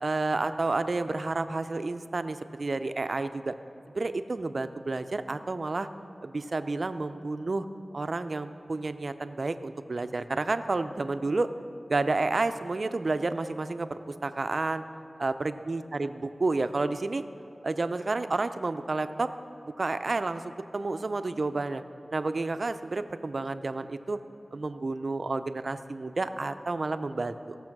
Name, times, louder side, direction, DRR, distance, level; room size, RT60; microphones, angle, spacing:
voice 1, 0.0-3.5 3.9-5.9 6.2-7.7 7.9-11.5 11.9-14.8 15.2-17.2 17.6-19.3 19.6-21.8 22.1-24.2 24.5-27.6, right 3 dB, 60° right, 10 dB, 0.5 m, -30 dB
16.0 x 6.9 x 5.9 m, 2.6 s
wide cardioid pair, 55°, 0 cm